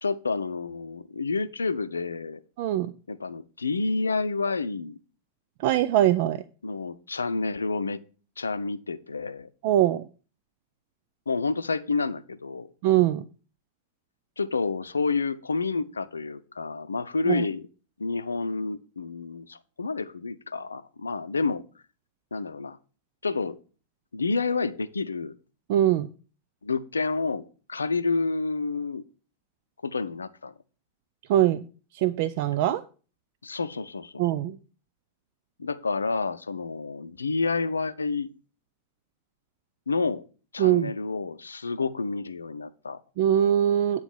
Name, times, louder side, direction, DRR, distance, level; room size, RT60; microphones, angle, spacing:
voice 1, 0.0-2.4 3.1-5.0 6.6-8.0 8.4-9.5 11.3-12.7 14.4-17.7 18.0-21.6 22.3-22.8 23.2-23.6 24.1-25.3 26.6-27.4 27.7-29.0 29.8-30.5 33.4-34.2 35.6-38.3 39.9-40.2 40.5-43.0, left 4 dB, 75° left, 13 dB, 0.6 m, -29 dB
voice 2, 2.6-2.9 5.6-6.4 9.6-10.0 12.8-13.2 17.3-17.5 25.7-26.1 31.3-31.7 31.9-32.8 34.2-34.6 40.6-40.9 43.2-44.0, right 12 dB, 50° right, 13 dB, 0.4 m, -22 dB
9.1 x 4.0 x 7.2 m, 0.37 s
figure-of-eight pair, 90°, 0 cm